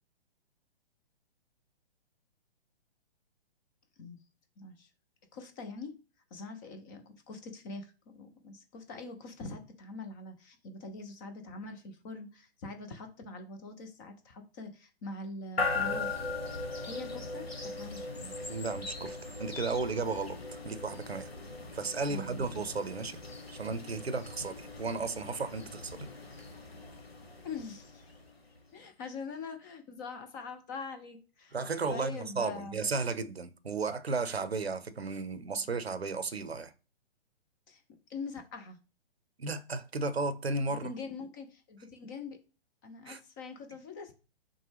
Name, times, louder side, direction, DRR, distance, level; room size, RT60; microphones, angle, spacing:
voice 1, 4.6-4.9 5.3-5.9 6.3-16.1 16.8-18.4 22.1-22.6 27.4-28.0 28.7-31.6 31.9-32.8 37.7-37.8 38.1-38.8 40.6-42.4 42.8-44.1, left 3 dB, 20° left, 0.6 m, -43 dB
sound 1, 15.6-28.6, left 3 dB, 80° left, 1.2 m, -39 dB
voice 2, 18.5-21.3 21.7-23.2 23.5-26.1 31.5-36.7 39.4-40.9 43.1-43.2, right 4 dB, 85° right, 0.7 m, -34 dB
6.0 x 2.2 x 3.4 m
figure-of-eight pair, 125°, 30 cm